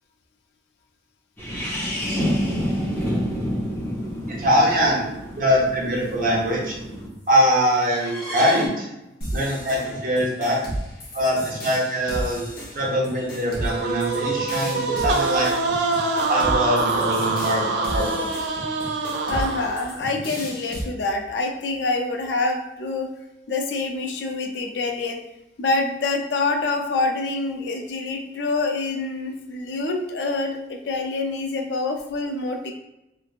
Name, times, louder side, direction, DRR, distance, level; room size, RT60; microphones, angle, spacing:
sound 1, 1.4-7.1 7.9-8.7, equal, 10° left, 0.7 m, -28 dB
voice 1, 4.3-5.1 5.4-6.7 7.3-8.9 9.3-10.6 11.1-12.5 12.7-15.5 16.3-18.6, equal, 50° right, -3 dB, 0.7 m, -22 dB
sound 2, 9.2-20.8, equal, 55° left, 0.9 m, -33 dB
sound 3, 13.6-19.9, right 3 dB, 75° right, 0.3 m, -25 dB
voice 2, 19.3-23.1 23.5-25.2 25.6-32.7, left 3 dB, 85° left, 3 dB, 0.4 m, -26 dB
3.2 x 2.4 x 2.4 m, 0.89 s
head